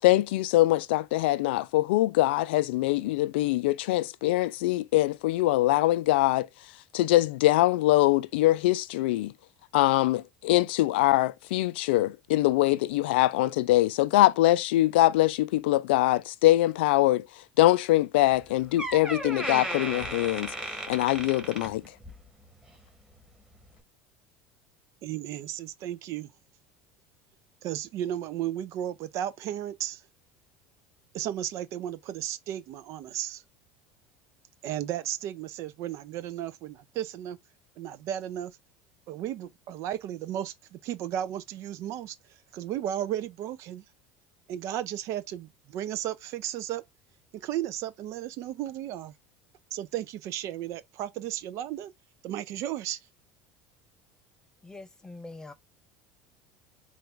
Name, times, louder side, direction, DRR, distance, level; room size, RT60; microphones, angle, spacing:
voice 1, 0.0-6.5 6.9-9.3 9.7-17.3 17.6-20.5 20.9-21.8, left 16 dB, 80° left, 0.3 m, -23 dB
Door, 18.3-18.4 18.8-22.3 22.6-22.9 23.6-23.7, right 1 dB, 15° right, 1.5 m, -35 dB
voice 2, 25.0-26.3 27.6-30.0 31.1-33.4 34.6-37.4 37.8-38.6 39.1-42.2 42.5-43.8 44.5-46.8 47.3-49.1 49.7-51.9 52.2-53.0, right 11 dB, 60° right, 0.4 m, -34 dB
voice 3, 54.6-55.5, left 2 dB, 10° left, 0.5 m, -43 dB
3.9 x 2.4 x 3.3 m
hypercardioid pair, 85°, 6 cm